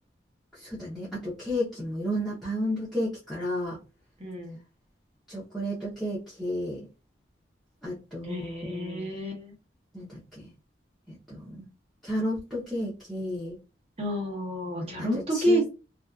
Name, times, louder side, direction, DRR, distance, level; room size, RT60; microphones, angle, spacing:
voice 1, 0.5-3.8 5.3-6.9 7.8-9.2 9.9-10.5 11.1-11.7 12.0-13.6 14.8-15.6, equal, ahead, -9 dB, 0.7 m, -33 dB
voice 2, 4.2-4.6 8.2-9.5 14.0-15.7, equal, 30° right, -1 dB, 0.9 m, -29 dB
2.6 x 2.3 x 2.3 m, 0.32 s
head